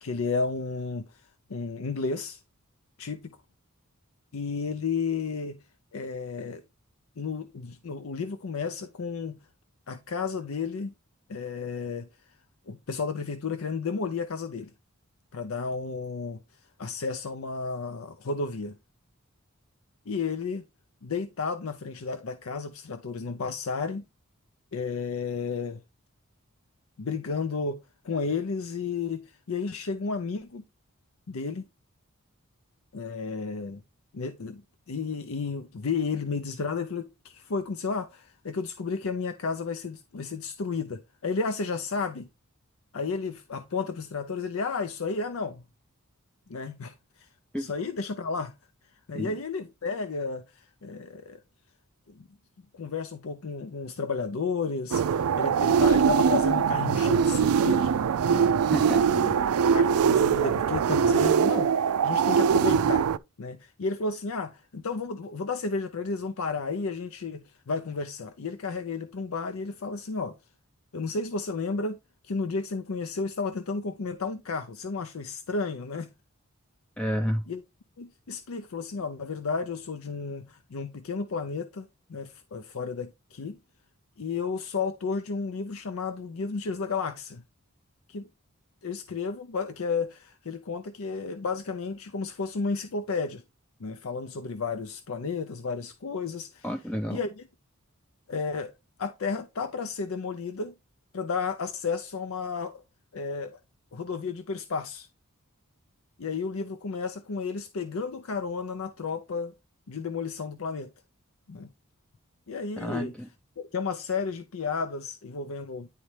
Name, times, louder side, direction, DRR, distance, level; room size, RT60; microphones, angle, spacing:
voice 1, 0.0-1.2 1.5-2.4 3.0-3.4 4.3-5.6 5.9-6.6 7.2-9.4 9.9-10.9 11.3-12.1 12.7-14.7 15.3-16.4 16.8-18.8 20.1-20.6 21.0-24.1 24.7-25.8 27.0-30.6 31.3-31.7 32.9-33.8 34.1-34.6 34.9-42.3 42.9-45.6 46.5-47.3 47.5-48.5 49.1-51.4 52.1-52.3 52.7-58.0 58.3-58.6 59.1-59.3 59.7-63.1 63.4-70.4 70.9-72.0 72.2-76.1 77.5-77.6 78.0-83.6 84.2-87.4 88.1-88.3 88.8-93.4 93.8-96.7 97.1-97.4 98.3-100.7 101.1-102.8 103.1-103.6 103.9-105.1 106.2-109.5 109.9-110.9 111.5-111.7 112.5-113.1 113.6-115.9, left 4 dB, 65° left, 0.5 m, -32 dB
sound 1, 54.9-63.2, right 7 dB, 80° right, 0.4 m, -22 dB
voice 2, 58.7-59.0 77.0-77.4 96.6-97.2 112.8-113.3, equal, 5° left, 0.5 m, -30 dB
9.9 x 4.2 x 3.2 m
head